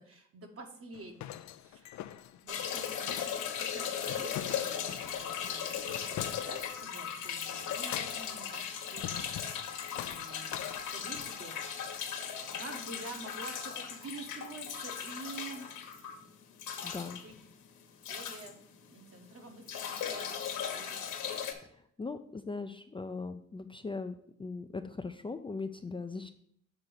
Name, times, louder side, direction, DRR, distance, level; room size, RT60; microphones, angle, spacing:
voice 1, 0.0-3.3 3.6-5.9 6.2-9.3 9.9-12.1 12.6-15.9 17.1-17.4 18.1-18.6 18.9-21.6, right 3 dB, 50° right, 3 dB, 1.5 m, -48 dB
sound 1, 0.9-6.9 7.6-8.4 9.0-9.7 10.0-11.4, left 12 dB, 70° left, 0.5 m, -44 dB
sound 2, 2.5-19.2 19.5-21.5, left 8 dB, 85° left, 1.2 m, -38 dB
voice 2, 16.8-17.2 22.0-24.1 24.4-26.3, left 4 dB, 15° left, 6 dB, 0.5 m, -39 dB
7.3 x 3.9 x 6.4 m, 0.64 s
cardioid pair, 90°, 30 cm